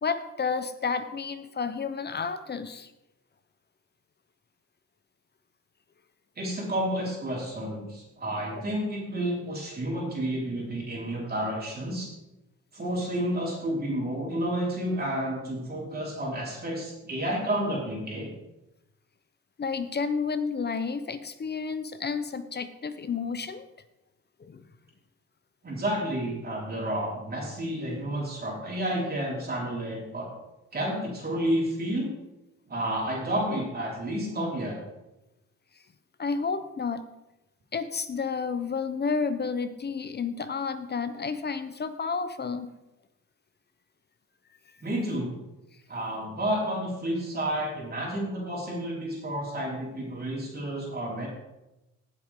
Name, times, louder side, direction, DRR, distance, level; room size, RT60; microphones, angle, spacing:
voice 1, 0.0-2.9 19.6-23.7 24.4-24.6 36.2-37.0 37.7-42.7, left 5 dB, 35° left, 11 dB, 0.8 m, -31 dB
voice 2, 6.4-12.1 12.7-18.3 25.6-30.3 30.7-32.1 32.7-34.8 44.8-45.4 45.9-51.3, right 1 dB, 30° right, -3 dB, 4.5 m, -30 dB
18.0 x 8.1 x 3.7 m, 0.94 s
cardioid pair, 110°, 30 cm